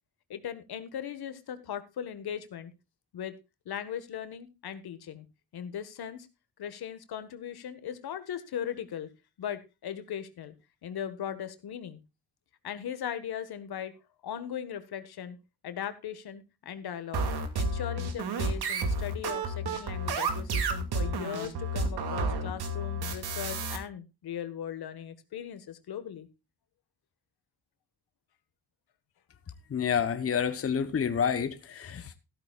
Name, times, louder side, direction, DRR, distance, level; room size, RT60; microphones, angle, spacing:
voice 1, 0.3-2.7 3.1-3.3 3.6-5.3 5.5-6.3 6.6-9.1 9.4-10.5 10.8-12.0 12.6-13.9 14.2-15.4 15.6-17.3 17.5-26.3, left 9 dB, 75° left, 1.7 m, -38 dB
sound 1, 17.1-23.8, right 2 dB, 80° right, 2.6 m, -31 dB
voice 2, 29.7-32.1, left 7 dB, 35° left, 1.1 m, -29 dB
14.5 x 13.0 x 2.4 m
wide cardioid pair, 140°, 38 cm